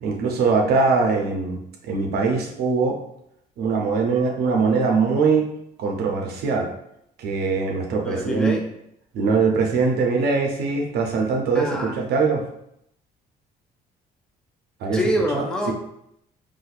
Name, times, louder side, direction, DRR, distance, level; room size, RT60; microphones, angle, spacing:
voice 1, 0.0-1.6 1.8-3.0 3.6-5.5 5.8-6.7 7.2-8.5 9.1-12.4 14.8-15.0 15.3-15.7, right 4 dB, 70° right, 1 dB, 0.6 m, -22 dB
voice 2, 8.0-8.6 11.5-12.0 14.9-15.7, equal, 5° left, 1 dB, 0.5 m, -25 dB
4.0 x 2.6 x 2.4 m, 0.76 s
cardioid pair, 110°, 17 cm